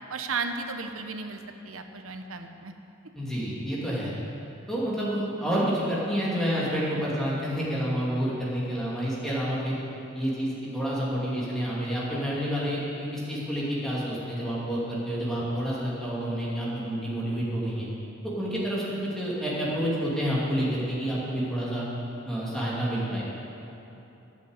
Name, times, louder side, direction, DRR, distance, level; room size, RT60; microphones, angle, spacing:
voice 1, 0.1-2.7, right 4 dB, 90° right, 6 dB, 0.9 m, -34 dB
voice 2, 3.1-4.1 4.7-9.8 10.1-17.9 18.4-21.9 22.2-23.2, equal, 5° left, -7 dB, 2.7 m, -29 dB
10.5 x 8.4 x 8.1 m, 3.0 s
head